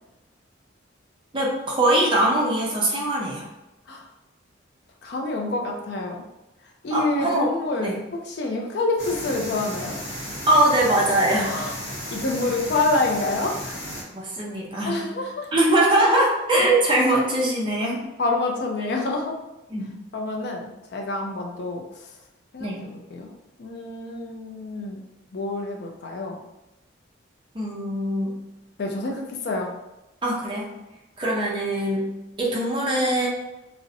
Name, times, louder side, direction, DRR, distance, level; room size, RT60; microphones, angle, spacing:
voice 1, 1.3-3.4 6.9-7.5 7.8-8.0 10.5-11.5 14.1-15.0 15.5-18.0 19.7-19.9 22.6-22.9 27.5-28.4 30.2-30.7 31.2-33.3, right 1 dB, 25° right, -3 dB, 0.5 m, -22 dB
voice 2, 5.0-6.2 6.8-10.0 11.3-11.7 12.1-13.8 14.8-15.5 18.2-19.3 20.1-21.8 22.5-23.3 23.6-25.0 25.3-26.4 28.8-29.7, left 2 dB, 55° left, 1 dB, 0.4 m, -27 dB
sound 1, 9.0-14.0, equal, 85° left, 0.8 m, -34 dB
2.5 x 2.0 x 2.6 m, 0.97 s
head